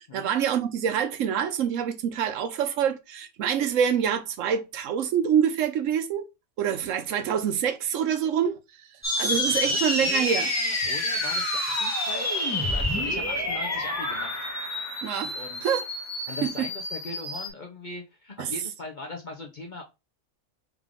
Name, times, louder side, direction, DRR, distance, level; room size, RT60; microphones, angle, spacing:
voice 1, 0.1-6.2 6.6-8.6 9.2-10.5 15.0-15.3 15.6-15.8 18.4-18.5, right 8 dB, 70° right, 0.9 m, -26 dB
sound 1, 9.0-17.5, left 1 dB, 15° left, 1.0 m, -28 dB
voice 2, 9.6-12.4 12.6-14.4 15.3-15.6 16.3-19.8, left 3 dB, 45° left, 0.6 m, -40 dB
3.6 x 3.4 x 3.6 m
omnidirectional pair, 1.5 m